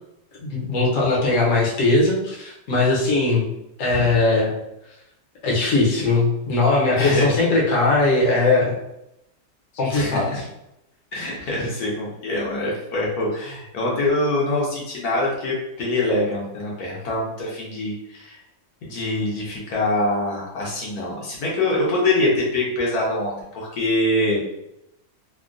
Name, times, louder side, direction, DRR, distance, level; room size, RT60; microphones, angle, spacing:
voice 1, 0.5-3.5 3.8-4.5 5.4-8.8 9.8-10.4, left 3 dB, 65° left, -4 dB, 1.1 m, -19 dB
voice 2, 6.9-7.3 9.9-10.4 11.1-18.4 18.8-24.5, left 2 dB, 80° left, -3 dB, 1.4 m, -24 dB
3.5 x 2.2 x 2.4 m, 0.84 s
omnidirectional pair, 1.6 m